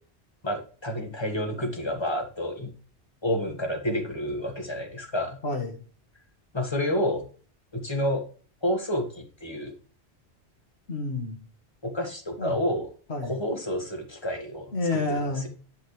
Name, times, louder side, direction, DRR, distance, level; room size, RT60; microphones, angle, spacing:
voice 1, 0.4-2.7 3.2-5.4 6.5-7.2 7.7-8.2 8.6-9.7 11.8-12.9 13.3-14.7, equal, 25° left, 3 dB, 1.7 m, -29 dB
voice 2, 5.4-5.8 10.9-11.4 12.4-12.6 13.1-13.4 14.7-15.5, left 2 dB, 70° left, 3 dB, 2.1 m, -29 dB
10.5 x 5.8 x 3.3 m, 0.39 s
omnidirectional pair, 1.1 m